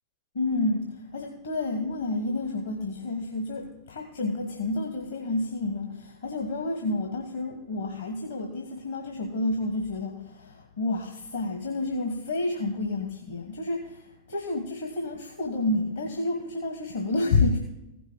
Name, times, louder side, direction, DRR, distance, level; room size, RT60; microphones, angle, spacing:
voice 1, 0.3-17.6, left 2 dB, 70° left, 2 dB, 1.3 m, -29 dB
15.5 x 6.1 x 4.6 m, 0.93 s
figure-of-eight pair, 90°, 0 cm